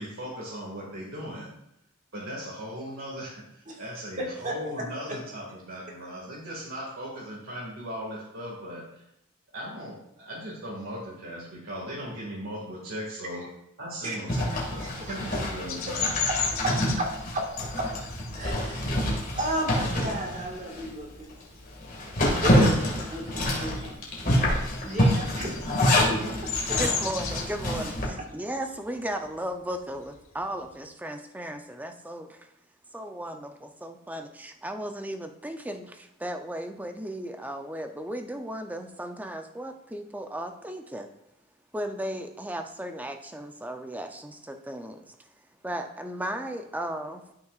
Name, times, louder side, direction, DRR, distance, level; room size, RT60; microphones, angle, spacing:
voice 1, 0.0-1.5 2.1-9.0 9.5-13.4 13.8-16.1, equal, 75° right, -6 dB, 2.0 m, -38 dB
voice 2, 4.2-5.2 13.3-13.5 14.0-15.2 15.9-16.0 16.3-17.9 18.3-19.1 19.4-21.3 22.4-26.8 28.2-28.3, right 1 dB, 40° right, 0 dB, 1.7 m, -34 dB
Zipper (clothing), 14.3-20.9 21.3-21.4 21.8-28.1, left 1 dB, 40° left, 2.0 m, -26 dB
Bird vocalization bird call bird song, 15.7-20.9 21.3-21.7 22.0-23.2 23.4-30.8, left 6 dB, 85° left, 1.3 m, -35 dB
voice 3, 26.8-32.5 32.9-41.1 41.7-45.2 45.6-47.3, right 1 dB, 10° right, 6 dB, 0.5 m, -35 dB
12.5 x 5.8 x 2.4 m, 0.80 s
head